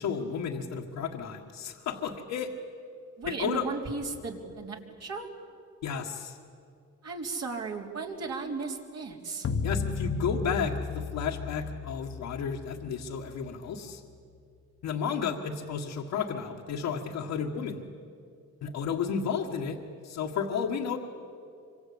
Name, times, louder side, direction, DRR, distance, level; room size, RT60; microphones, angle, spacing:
voice 1, 0.0-2.5 3.3-3.7 5.8-6.4 9.6-14.0 14.8-17.8 18.6-19.8 20.0-21.0, left 6 dB, 80° left, -1 dB, 1.8 m, -32 dB
voice 2, 3.2-5.3 7.0-9.5, right 4 dB, 55° right, 0 dB, 3.9 m, -35 dB
sound 1, 9.4-13.9, left 5 dB, 50° left, 1.2 m, -34 dB
25.5 x 25.5 x 8.7 m, 2.5 s
cardioid pair, 90°, 30 cm